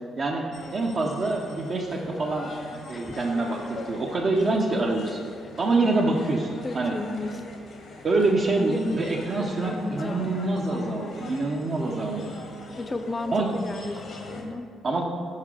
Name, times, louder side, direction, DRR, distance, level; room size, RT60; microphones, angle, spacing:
voice 1, 0.2-0.5 0.7-2.5 2.9-5.2 5.6-6.9 8.0-12.3 13.3-13.5 14.8-15.0, right 2 dB, 45° right, -1 dB, 0.6 m, -25 dB
sound 1, 0.5-14.4, left 3 dB, 65° left, 1.1 m, -42 dB
voice 2, 6.6-7.4 8.6-9.0 9.4-10.3 12.8-14.7, left 2 dB, 25° left, 8 dB, 0.4 m, -33 dB
5.7 x 4.7 x 4.8 m, 2.2 s
cardioid pair, 90°, 0 cm